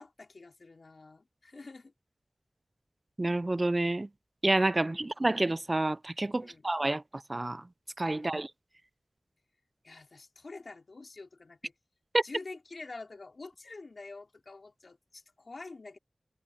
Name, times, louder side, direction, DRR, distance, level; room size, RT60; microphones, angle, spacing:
voice 1, 0.0-1.9 4.8-5.1 6.4-6.7 8.1-8.4 9.8-11.7 12.2-16.0, left 3 dB, 65° left, 3.6 m, -47 dB
voice 2, 3.2-4.1 4.4-7.0 7.3-7.6 8.0-8.5 12.1-12.2, right 2 dB, 35° right, 0.4 m, -28 dB
wide cardioid pair, 65°, 0 cm